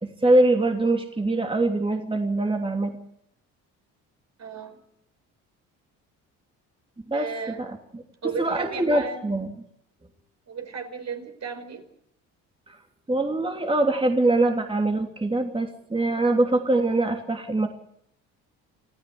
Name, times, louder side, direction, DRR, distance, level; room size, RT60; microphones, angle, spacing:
voice 1, 0.0-2.9 7.1-7.2 7.6-7.7 8.4-9.5 13.1-17.7, right 2 dB, 15° right, 3 dB, 3.2 m, -23 dB
voice 2, 4.4-4.8 7.1-7.6 8.2-9.3 10.5-11.9, right 6 dB, 45° right, 7 dB, 5.0 m, -34 dB
27.5 x 15.0 x 8.1 m, 0.75 s
supercardioid pair, 65°, 37 cm